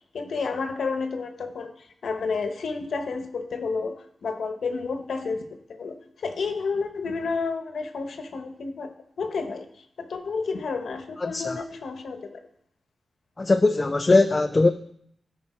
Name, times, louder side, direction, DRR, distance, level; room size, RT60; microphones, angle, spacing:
voice 1, 0.1-8.9 9.2-9.6 10.0-12.4, left 4 dB, 75° left, 7 dB, 1.0 m, -31 dB
voice 2, 11.2-11.6 13.4-14.7, left 3 dB, 25° left, 7 dB, 0.3 m, -20 dB
13.5 x 5.5 x 4.3 m, 0.71 s
wide cardioid pair, 170°, 0 cm